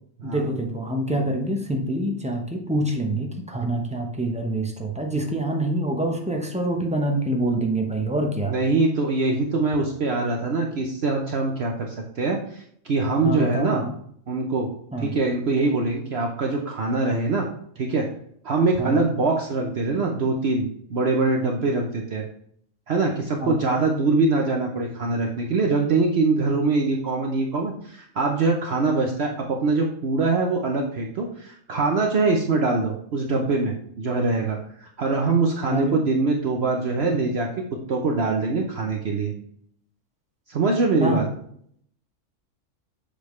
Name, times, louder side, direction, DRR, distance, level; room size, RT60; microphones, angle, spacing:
voice 1, 0.2-8.6 13.2-13.9 14.9-15.1 18.8-19.0 23.4-23.6 35.6-36.0 41.0-41.3, right 1 dB, 5° right, 2 dB, 0.7 m, -26 dB
voice 2, 8.5-13.8 14.3-14.7 15.0-17.5 17.8-18.1 18.4-22.2 22.9-37.5 37.9-39.3 40.5-41.2, right 3 dB, 55° right, 1 dB, 1.0 m, -23 dB
6.9 x 5.1 x 3.1 m, 0.65 s
omnidirectional pair, 1.4 m